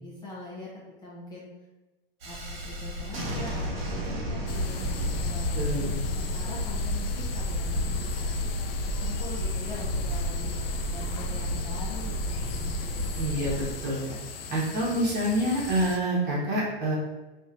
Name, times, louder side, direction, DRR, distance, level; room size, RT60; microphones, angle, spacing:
voice 1, 0.0-1.5 2.2-13.1, left 2 dB, 15° left, -7 dB, 0.7 m, -43 dB
Thunderstorm, 2.2-13.7, equal, 75° right, 0.9 m, -31 dB
sound 1, 4.5-16.0, left 4 dB, 75° left, 0.5 m, -39 dB
voice 2, 5.5-6.0 13.2-14.0 14.5-17.0, right 1 dB, 35° right, -4 dB, 1.2 m, -27 dB
3.1 x 2.7 x 2.5 m, 1.1 s
hypercardioid pair, 105°, 30 cm